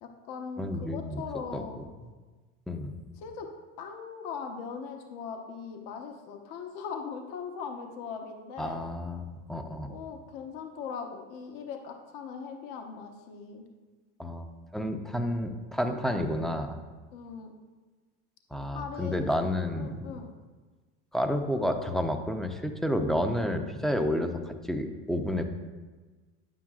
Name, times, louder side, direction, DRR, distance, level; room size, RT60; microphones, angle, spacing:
voice 1, 0.0-1.8 3.2-3.5 3.8-8.8 9.8-13.7 17.1-17.5 18.7-19.2 19.8-20.3, left 6 dB, 65° left, 3 dB, 1.0 m, -40 dB
voice 2, 0.6-1.2 1.5-1.6 2.7-2.9 8.6-9.9 14.2-14.5 14.7-16.8 18.5-20.0 21.1-25.5, left 1 dB, ahead, 4 dB, 0.5 m, -30 dB
9.2 x 7.4 x 2.4 m, 1.3 s
supercardioid pair, 100°, 35 cm